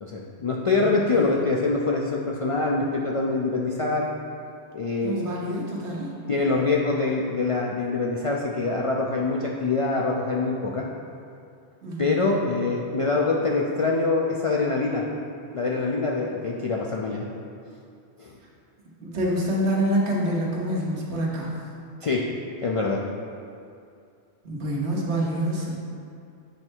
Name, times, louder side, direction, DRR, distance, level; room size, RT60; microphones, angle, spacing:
voice 1, 0.0-4.1 4.7-5.1 6.3-10.8 12.0-15.0 15.5-17.3 18.2-18.4 22.0-22.2 22.6-23.0, left 3 dB, 60° left, -2 dB, 0.3 m, -24 dB
voice 2, 0.8-1.3 5.0-6.1 11.8-12.3 19.0-21.5 24.4-25.7, right 1 dB, 80° right, -3 dB, 1.4 m, -27 dB
7.8 x 3.2 x 4.5 m, 2.5 s
omnidirectional pair, 1.1 m